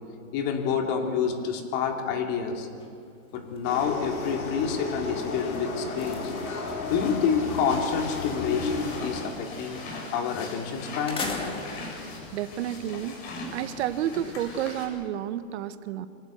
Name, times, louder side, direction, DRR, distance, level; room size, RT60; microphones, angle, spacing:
voice 1, 0.3-2.7 3.3-6.3 6.9-9.8 10.1-11.3, left 6 dB, 35° left, 3 dB, 2.7 m, -28 dB
sound 1, 2.8-3.1 3.3-8.3 8.7-9.9 10.3-10.5 10.9-12.2, left 3 dB, 10° left, 2.1 m, -41 dB
sound 2, 3.6-9.3, left 4 dB, 75° left, 6.1 m, -33 dB
sound 3, 6.8-14.9, left 2 dB, 50° left, 7.3 m, -41 dB
voice 2, 12.3-13.1 13.5-16.1, right 11 dB, 50° right, 12 dB, 1.2 m, -30 dB
25.0 x 17.0 x 8.0 m, 2.3 s
hypercardioid pair, 155°, 43 cm